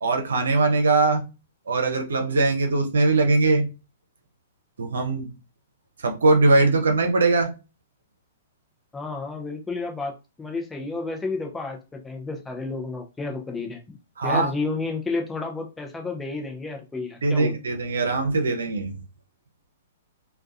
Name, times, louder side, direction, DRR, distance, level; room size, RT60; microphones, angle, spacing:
voice 1, 0.0-1.2 1.7-3.7 4.8-5.3 6.0-7.5 14.2-14.5 17.2-18.9, right 3 dB, 70° right, 0.6 m, -21 dB
voice 2, 8.9-10.1 10.4-14.0 14.2-17.6, left 3 dB, 10° left, 0.6 m, -31 dB
2.3 x 2.2 x 2.6 m
figure-of-eight pair, 115°, 0 cm